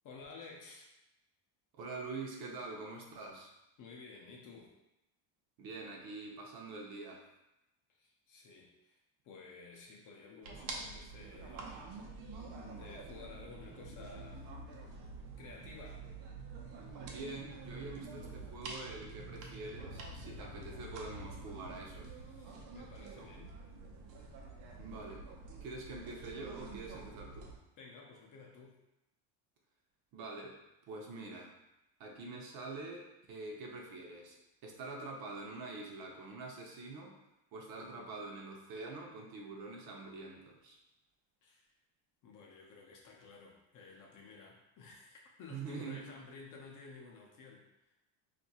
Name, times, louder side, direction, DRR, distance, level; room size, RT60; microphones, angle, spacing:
voice 1, 0.0-0.9 3.8-4.7 7.9-9.0 9.2-11.9 12.8-14.4 15.3-16.0 22.1-23.6 27.8-28.8 41.4-41.7 42.2-47.9, left 4 dB, 45° left, -1 dB, 0.6 m, -53 dB
voice 2, 1.7-3.5 5.6-7.2 17.0-22.1 24.7-25.2 25.6-27.5 30.1-30.6 30.9-31.5 32.0-34.4 34.6-37.2 37.5-40.8 45.5-46.1, right 3 dB, 50° right, 0 dB, 0.7 m, -45 dB
sound 1, 10.4-27.6, right 3 dB, 85° right, 0.8 m, -47 dB
2.7 x 2.5 x 4.1 m, 0.93 s
cardioid pair, 165°, 46 cm